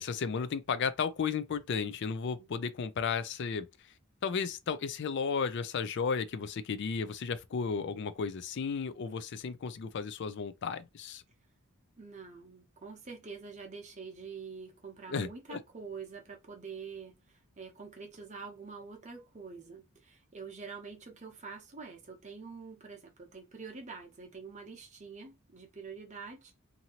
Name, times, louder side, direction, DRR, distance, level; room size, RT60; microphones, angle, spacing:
voice 1, 0.0-3.9 4.2-11.2 15.1-15.6, left 5 dB, 55° left, 0.4 m, -34 dB
voice 2, 12.0-26.6, right 5 dB, 35° right, 0.8 m, -46 dB
2.8 x 2.6 x 2.9 m
head